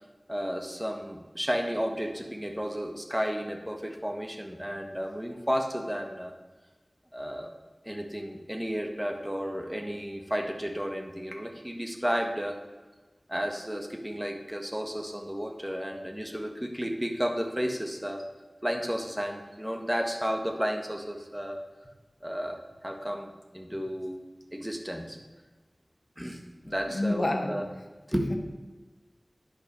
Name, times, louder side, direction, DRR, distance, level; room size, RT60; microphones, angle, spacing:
voice 1, 0.3-6.3 7.1-7.5 7.8-12.6 13.3-18.2 18.6-21.6 22.2-22.6 22.8-24.2 24.5-25.2 26.2-27.6 28.1-28.3, equal, 10° right, 3 dB, 1.6 m, -32 dB
voice 2, 26.9-27.6, left 1 dB, 70° left, 3 dB, 1.5 m, -28 dB
10.0 x 5.8 x 6.6 m, 1.2 s
wide cardioid pair, 40°, 0 cm